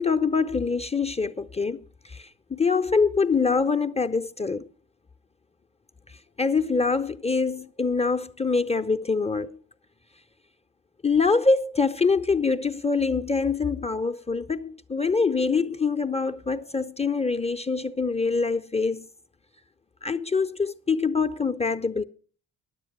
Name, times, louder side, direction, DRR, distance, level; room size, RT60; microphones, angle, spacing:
voice 1, 0.0-4.7 6.4-9.6 11.0-19.1 20.0-22.0, left 4 dB, 15° left, 0.5 m, -24 dB
10.5 x 8.1 x 6.0 m
hypercardioid pair, 45°, 46 cm